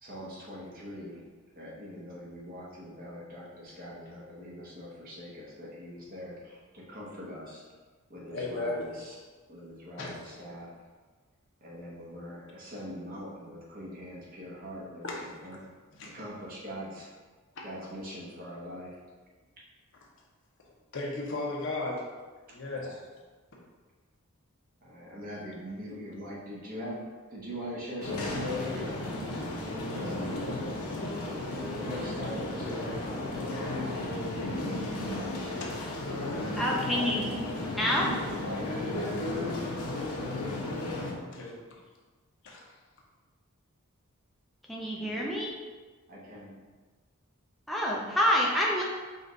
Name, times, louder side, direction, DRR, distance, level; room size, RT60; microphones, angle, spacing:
voice 1, 0.0-1.2 1.5-7.6 8.1-9.2 9.5-10.7 11.6-15.6 16.1-17.1 17.6-19.0 22.7-22.9 24.8-27.0 27.3-29.4 29.9-30.4 31.5-34.2 36.7-37.4 37.9-39.6 39.9-40.5 45.0-45.3 46.1-46.5, equal, 40° right, -5 dB, 1.0 m, -42 dB
voice 2, 8.3-8.9 10.0-10.2 15.0-15.3 15.9-16.1 17.5-17.7 20.9-22.1 22.5-23.0 35.2-35.8 36.4-36.5 41.2-41.6 42.4-42.6, left 2 dB, 55° left, -3 dB, 1.0 m, -36 dB
sound 1, 28.0-41.1, left 2 dB, 80° left, 0.9 m, -34 dB
voice 3, 36.6-37.2 37.8-38.1 44.7-45.5 47.7-48.8, equal, ahead, -5 dB, 0.4 m, -27 dB
5.2 x 2.5 x 3.9 m, 1.4 s
head